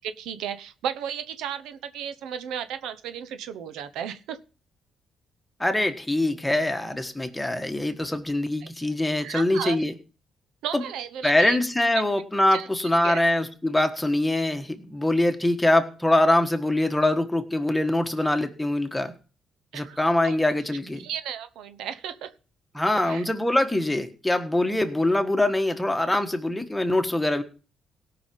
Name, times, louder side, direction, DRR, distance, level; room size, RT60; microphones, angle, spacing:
voice 1, 0.0-4.4 8.6-8.7 9.2-9.8 10.6-11.6 12.5-12.7 13.0-13.2 19.7-20.0 20.2-20.4 21.0-22.3 22.9-23.2, right 9 dB, 90° right, 12 dB, 0.8 m, -34 dB
voice 2, 5.6-9.9 10.7-10.8 11.2-19.1 19.7-21.1 22.7-27.4, left 1 dB, 10° left, 6 dB, 1.5 m, -23 dB
17.0 x 5.8 x 5.3 m, 0.36 s
cardioid pair, 90°, 0 cm